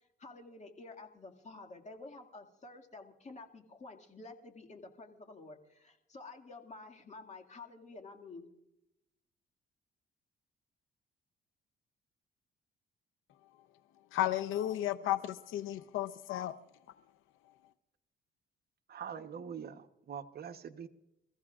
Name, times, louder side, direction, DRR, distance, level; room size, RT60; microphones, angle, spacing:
voice 1, 0.2-8.5, left 3 dB, 35° left, 2.1 m, -50 dB
voice 2, 14.1-16.6, left 13 dB, 85° left, 0.7 m, -33 dB
voice 3, 18.9-20.9, right 7 dB, 50° right, 1.0 m, -44 dB
27.5 x 15.0 x 2.4 m
cardioid pair, 90°, 20 cm